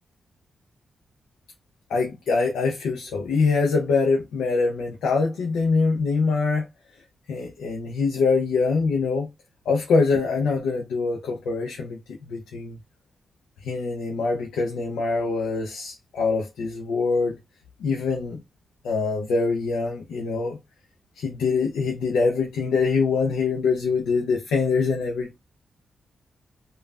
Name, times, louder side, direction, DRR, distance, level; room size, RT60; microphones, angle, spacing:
voice 1, 1.9-6.7 7.3-9.3 9.7-12.8 13.6-17.4 17.8-18.4 18.8-20.6 21.2-25.4, left 4 dB, 85° left, 0.5 m, -24 dB
3.2 x 2.2 x 2.3 m
cardioid pair, 55°, 0 cm